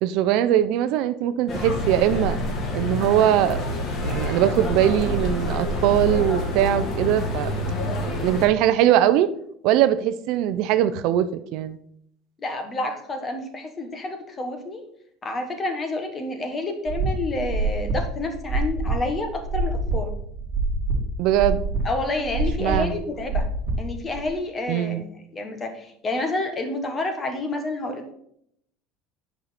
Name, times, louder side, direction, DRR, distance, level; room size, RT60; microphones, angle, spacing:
voice 1, 0.0-2.4 2.7-3.6 4.0-7.5 8.2-9.3 9.6-11.8 21.2-21.6 22.6-23.0 24.7-25.0, right 12 dB, 60° right, 12 dB, 0.5 m, -21 dB
sound 1, 1.5-8.5, left 1 dB, 35° left, 1.7 m, -27 dB
voice 2, 12.4-14.8 15.2-20.1 21.8-23.5 23.8-28.1, left 2 dB, 20° left, 5 dB, 1.3 m, -29 dB
sound 2, 16.9-24.3, right 3 dB, 30° right, 2.1 m, -26 dB
9.2 x 5.6 x 4.3 m, 0.70 s
cardioid pair, 155°, 0 cm